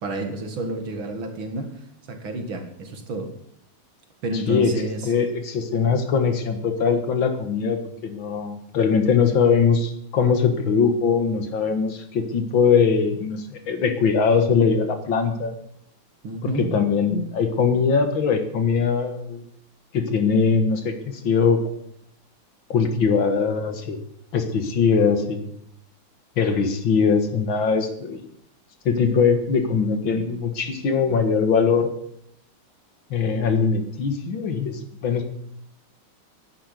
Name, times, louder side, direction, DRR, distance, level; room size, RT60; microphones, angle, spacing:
voice 1, 0.0-3.3 4.2-5.1 16.2-16.7, right 2 dB, 70° right, 5 dB, 2.7 m, -30 dB
voice 2, 5.0-15.5 16.4-19.4 19.9-21.6 22.7-24.0 24.3-25.4 26.4-28.2 28.9-31.9 33.1-35.3, left 5 dB, 65° left, 7 dB, 2.4 m, -21 dB
11.5 x 10.0 x 8.3 m, 0.70 s
omnidirectional pair, 2.3 m